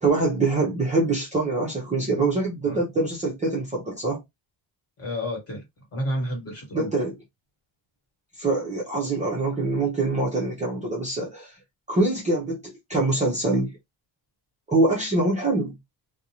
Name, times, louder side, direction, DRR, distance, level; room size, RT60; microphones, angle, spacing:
voice 1, 0.0-4.2 6.7-7.1 8.4-11.6 11.9-13.8 14.7-15.8, right 2 dB, 15° right, 0.5 m, -24 dB
voice 2, 5.0-6.9, equal, 30° left, 1.3 m, -31 dB
2.4 x 2.0 x 2.8 m
cardioid pair, 165°, 45 cm